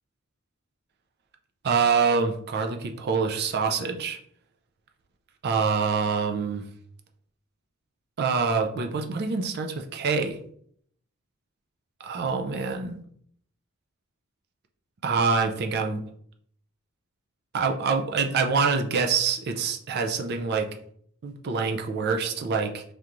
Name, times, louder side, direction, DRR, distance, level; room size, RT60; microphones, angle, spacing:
voice 1, 1.6-4.2 5.4-6.7 8.2-10.4 12.0-13.0 15.0-16.1 17.5-20.7 21.2-22.8, right 5 dB, 45° right, 4 dB, 0.4 m, -25 dB
3.4 x 2.9 x 2.5 m, 0.64 s
head